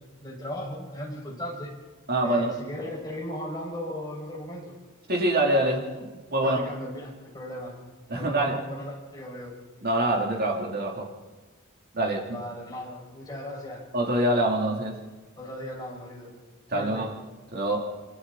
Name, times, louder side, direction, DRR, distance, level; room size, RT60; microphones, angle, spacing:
voice 1, 0.0-1.7 2.2-4.8 6.4-7.8 8.2-9.5 12.3-13.8 15.4-16.3 16.7-17.0, left 1 dB, 20° left, -2 dB, 6.4 m, -37 dB
voice 2, 2.1-2.5 5.1-6.7 8.1-8.6 9.8-11.1 11.9-12.4 13.9-15.0 16.7-17.1 17.5-17.9, right 1 dB, 50° right, -1 dB, 3.4 m, -25 dB
27.0 x 25.5 x 4.3 m, 1.3 s
head